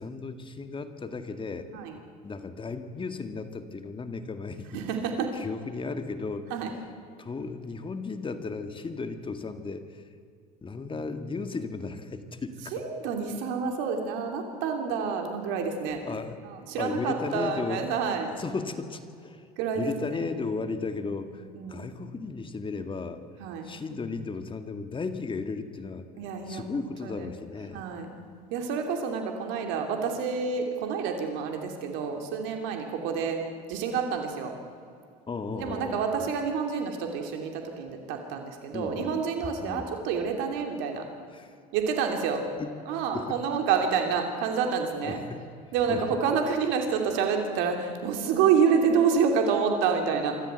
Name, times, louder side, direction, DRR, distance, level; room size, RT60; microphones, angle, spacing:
voice 1, 0.0-1.7 2.2-4.8 5.3-6.5 7.2-10.0 10.6-12.9 16.1-16.4 16.8-17.9 18.4-23.2 23.6-26.0 26.5-27.8 35.3-36.3 38.7-39.2 39.6-39.8 41.3-41.5 42.6-42.7 43.1-43.4 45.0-45.4 45.9-46.0, left 4 dB, 25° left, 9 dB, 2.0 m, -35 dB
voice 2, 4.7-5.3 6.5-6.7 12.7-16.0 16.4-18.3 19.6-19.9 21.4-21.9 23.4-23.7 26.2-26.6 27.0-27.3 27.7-28.1 28.5-33.4 33.7-34.5 35.6-41.0 41.7-42.4 42.9-45.2 45.7-50.4, right 6 dB, 70° right, 4 dB, 2.9 m, -28 dB
25.0 x 14.0 x 8.2 m, 2.3 s
supercardioid pair, 80°, 20 cm